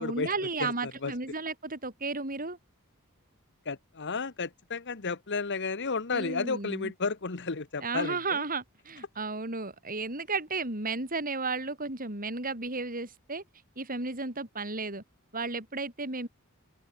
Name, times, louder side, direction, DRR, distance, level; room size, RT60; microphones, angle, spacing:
voice 1, 0.0-2.6 6.1-6.9 7.8-13.4 13.8-15.0 15.3-16.3, right 3 dB, 40° right, 7.4 m, -33 dB
voice 2, 0.6-1.1 3.6-8.4, left 4 dB, 55° left, 1.3 m, -32 dB
open air
head